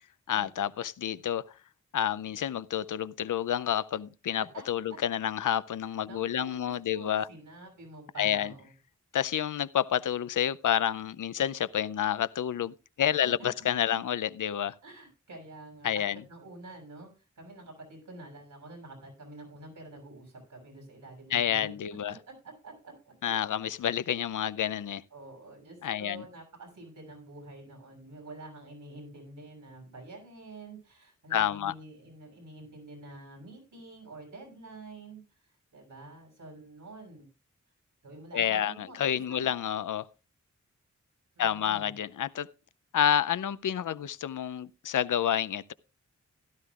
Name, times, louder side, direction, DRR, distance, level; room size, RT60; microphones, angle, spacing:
voice 1, 0.3-1.4 1.9-7.3 8.2-8.5 9.1-14.7 15.8-16.2 21.3-22.1 23.2-25.0 25.8-26.2 31.3-31.7 38.3-40.1 41.4-42.5 42.9-45.7, left 10 dB, 90° left, 0.5 m, -29 dB
voice 2, 6.1-8.7 13.2-13.5 14.8-15.9 16.3-17.1 17.4-21.8 22.1-23.6 25.1-35.2 35.5-37.3 38.0-39.0 39.3-39.5 41.3-41.9, right 2 dB, 85° right, 6.6 m, -48 dB
16.0 x 12.5 x 2.4 m
wide cardioid pair, 105°, 30 cm